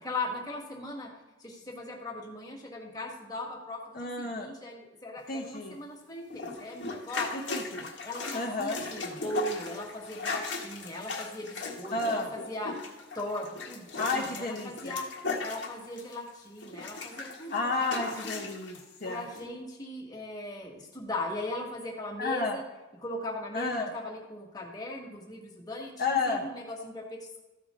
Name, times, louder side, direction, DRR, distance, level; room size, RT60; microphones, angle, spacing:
voice 1, 0.0-1.1 1.4-7.3 8.0-15.1 15.4-18.4 19.0-22.6 23.0-27.4, left 1 dB, 20° left, -1 dB, 1.8 m, -39 dB
voice 2, 3.9-4.5 5.3-5.8 7.3-7.9 8.3-8.8 11.9-12.3 14.0-14.9 17.5-19.2 22.2-22.5 23.5-23.9 26.0-26.4, left 3 dB, 50° left, -2 dB, 1.0 m, -31 dB
sound 1, 6.3-16.3 16.6-18.8 19.4-19.5, left 4 dB, 75° left, 1.4 m, -37 dB
14.0 x 5.0 x 3.8 m, 1.1 s
head